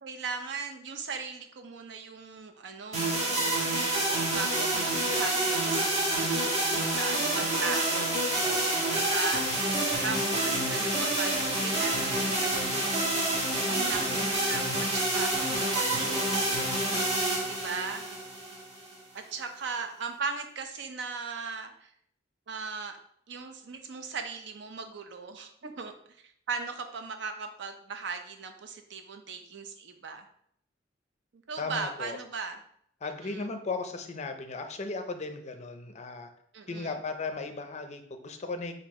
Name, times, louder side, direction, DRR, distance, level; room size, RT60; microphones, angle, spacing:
voice 1, 0.0-8.2 8.9-9.8 10.0-13.1 13.6-16.2 17.5-18.0 19.1-21.9 22.5-23.0 23.3-25.9 26.5-30.3 31.3-32.6 33.2-33.4 36.5-36.9, right 5 dB, 65° right, 6 dB, 0.5 m, -38 dB
sound 1, 2.9-19.0, right 1 dB, 35° right, 1.3 m, -28 dB
voice 2, 8.4-9.2 31.6-32.2 33.0-36.3 36.7-38.7, left 3 dB, 35° left, 7 dB, 0.5 m, -36 dB
4.5 x 2.6 x 4.1 m, 0.68 s
head